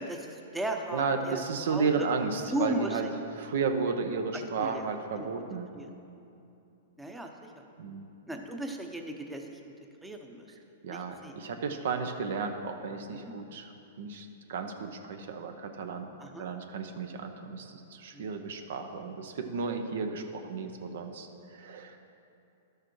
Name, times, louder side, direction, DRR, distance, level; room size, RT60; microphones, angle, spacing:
voice 1, 0.0-1.4 1.7-1.9 2.5-3.0 4.6-4.8 5.2-5.3 5.7-5.9 7.0-7.3 8.3-9.6 10.0-10.5 10.9-11.3 13.1-13.3 16.2-16.5 18.1-18.3, right 1 dB, 5° right, 3 dB, 0.7 m, -35 dB
voice 2, 0.9-3.1 3.4-5.7 7.8-8.1 10.8-13.7 14.0-22.0, right 5 dB, 70° right, 6 dB, 0.7 m, -33 dB
12.0 x 6.6 x 3.1 m, 2.7 s
hypercardioid pair, 125°, 0 cm